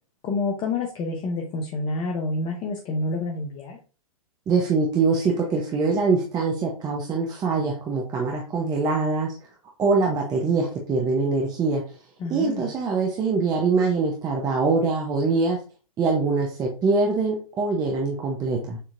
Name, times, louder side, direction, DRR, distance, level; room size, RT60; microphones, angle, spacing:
voice 1, 0.2-3.8 12.2-12.7, left 3 dB, 25° left, 1 dB, 0.7 m, -28 dB
voice 2, 4.5-9.3 9.8-11.8 12.3-15.6 16.0-18.8, right 4 dB, 20° right, 0 dB, 0.7 m, -23 dB
6.6 x 2.8 x 2.5 m, 0.36 s
hypercardioid pair, 115°, 19 cm